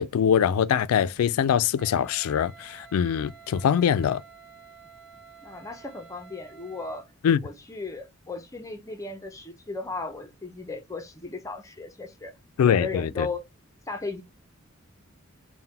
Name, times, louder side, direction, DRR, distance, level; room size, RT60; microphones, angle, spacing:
voice 1, 0.0-4.2 7.2-7.4 12.6-13.3, left 8 dB, 85° left, 0.3 m, -23 dB
Wind instrument woodwind instrument, 1.8-7.1, right 7 dB, 10° right, 1.1 m, -50 dB
voice 2, 5.4-7.1 7.4-12.3 12.7-13.4 13.9-14.2, left 3 dB, 15° left, 0.5 m, -36 dB
3.8 x 2.1 x 4.0 m
head